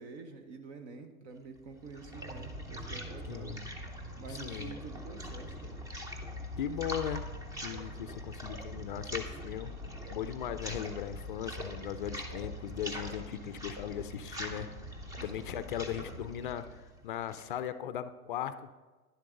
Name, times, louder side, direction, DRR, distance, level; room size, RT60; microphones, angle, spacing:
voice 1, 0.0-3.6 4.2-5.8 15.2-15.3 15.5-15.7, right 4 dB, 50° right, 7 dB, 0.9 m, -47 dB
sound 1, 1.6-17.6, equal, 10° right, 0.6 m, -42 dB
voice 2, 3.3-3.6 4.3-4.7 6.6-7.2 7.6-9.8 10.1-14.7 15.2-18.7, left 10 dB, 40° left, 12 dB, 0.4 m, -38 dB
10.5 x 7.5 x 3.7 m, 1.3 s
hypercardioid pair, 115°, 44 cm